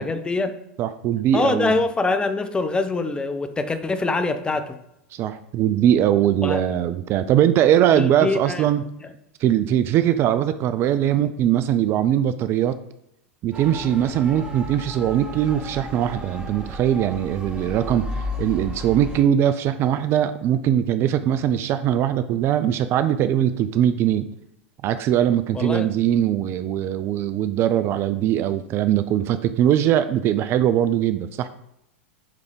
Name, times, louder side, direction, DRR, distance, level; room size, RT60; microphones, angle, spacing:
voice 1, 0.0-0.6 1.3-4.8 6.4-6.6 7.9-8.7 25.5-25.9, left 3 dB, 15° left, 0.6 m, -24 dB
voice 2, 0.8-1.7 5.1-8.8 9.4-12.8 13.4-18.1 18.4-24.3 24.8-31.5, right 10 dB, 35° right, 0.4 m, -21 dB
Motor vehicle (road) / Siren, 13.5-19.2, equal, 15° right, 1.8 m, -33 dB
8.0 x 3.5 x 5.1 m
figure-of-eight pair, 90°, 7 cm